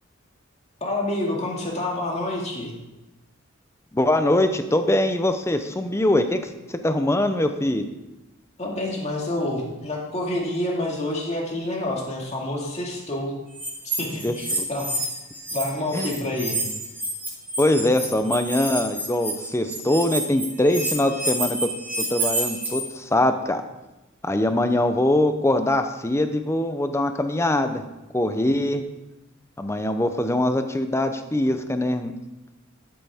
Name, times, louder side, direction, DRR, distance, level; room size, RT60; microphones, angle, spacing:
voice 1, 0.8-2.7 8.6-13.3 14.0-14.9 15.5-16.6, left 1 dB, 35° left, -2 dB, 2.1 m, -28 dB
voice 2, 3.9-8.0 14.2-14.7 15.9-16.1 17.6-21.7 22.0-23.6 24.2-27.8 28.1-28.8 29.6-32.1, left 1 dB, 15° left, 8 dB, 0.6 m, -22 dB
sound 1, 13.5-15.6 15.9-22.8, right 2 dB, 10° right, 2.4 m, -29 dB
12.5 x 7.7 x 3.6 m, 1.0 s
head